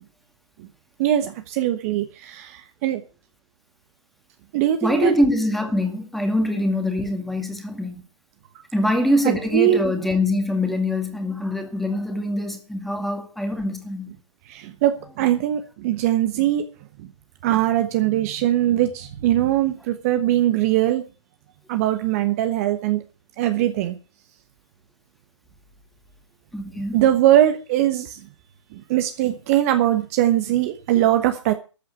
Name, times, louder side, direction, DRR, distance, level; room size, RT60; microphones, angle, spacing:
voice 1, 1.0-3.0 4.5-5.1 9.5-9.9 14.5-16.6 17.4-21.0 21.7-23.0 23.4-24.0 26.9-28.2 28.7-31.5, right 12 dB, 30° right, 1.2 m, -21 dB
voice 2, 4.8-8.0 8.7-14.1 26.5-27.0, left 1 dB, ahead, 2.1 m, -23 dB
14.0 x 7.9 x 7.8 m
figure-of-eight pair, 135°, 15 cm